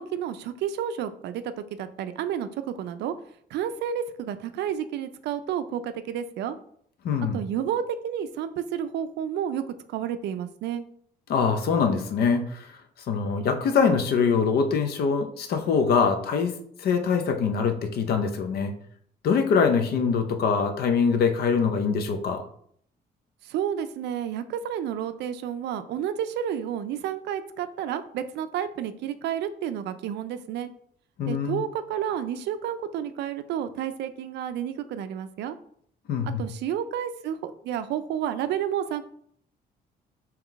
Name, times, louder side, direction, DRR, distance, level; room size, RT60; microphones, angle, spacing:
voice 1, 0.0-3.1 3.5-6.6 7.3-9.6 9.9-10.8 23.4-30.7 31.3-35.6 36.2-39.0, right 9 dB, 80° right, 11 dB, 0.4 m, -31 dB
voice 2, 7.0-7.4 11.3-12.8 13.1-18.7 19.2-22.4 31.2-31.6 36.1-36.4, left 5 dB, 65° left, 7 dB, 0.6 m, -24 dB
3.7 x 2.9 x 3.5 m, 0.64 s
cardioid pair, 130°, 17 cm